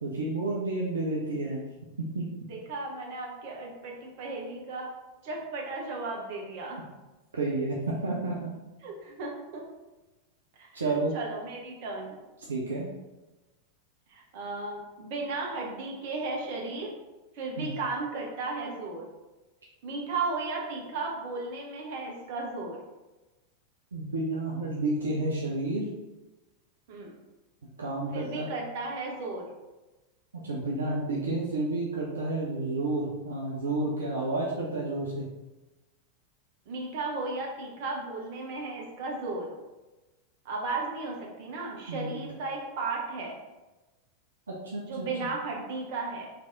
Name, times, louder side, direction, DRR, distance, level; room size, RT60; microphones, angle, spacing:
voice 1, 0.0-1.6 2.0-2.3 7.3-8.5 10.7-11.1 12.5-12.9 17.6-17.7 23.9-25.9 27.8-28.5 30.4-35.3 41.9-42.2 44.6-45.3, right 2 dB, 70° right, -4 dB, 0.6 m, -30 dB
voice 2, 2.5-4.9 5.2-6.8 8.8-9.6 10.6-10.7 11.1-12.2 14.1-16.9 17.3-19.1 19.8-22.8 26.9-27.2 28.1-29.5 36.7-39.5 40.4-43.4 44.8-46.3, right 3 dB, 50° right, -1 dB, 1.0 m, -35 dB
3.3 x 3.3 x 3.9 m, 1.1 s
figure-of-eight pair, 90°, 0 cm